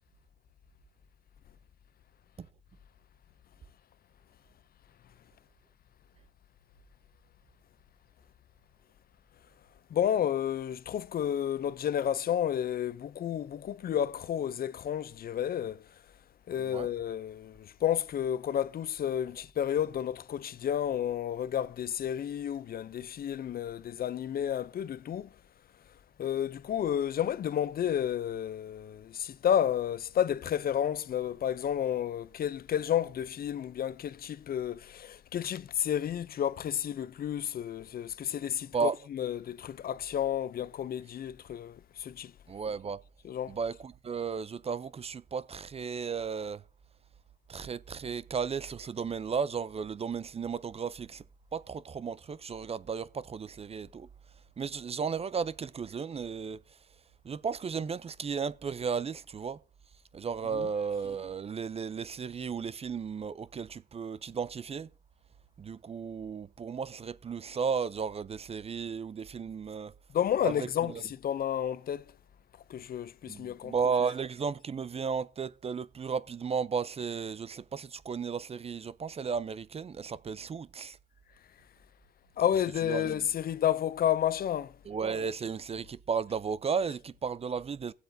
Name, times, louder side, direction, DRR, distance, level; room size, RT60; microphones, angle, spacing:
voice 1, 9.9-15.8 16.5-25.3 26.2-42.3 43.2-43.5 60.4-60.7 70.1-72.0 72.7-73.9 82.4-84.7, left 10 dB, 50° left, 0.5 m, -31 dB
voice 2, 42.5-43.0 43.5-46.6 47.5-51.2 51.5-54.1 54.6-56.6 57.2-59.6 60.1-64.9 65.6-69.9 70.4-71.0 73.3-81.0 82.8-83.3 84.9-87.9, right 6 dB, 30° right, 0.4 m, -34 dB
22.5 x 8.0 x 2.6 m
cardioid pair, 90°, 20 cm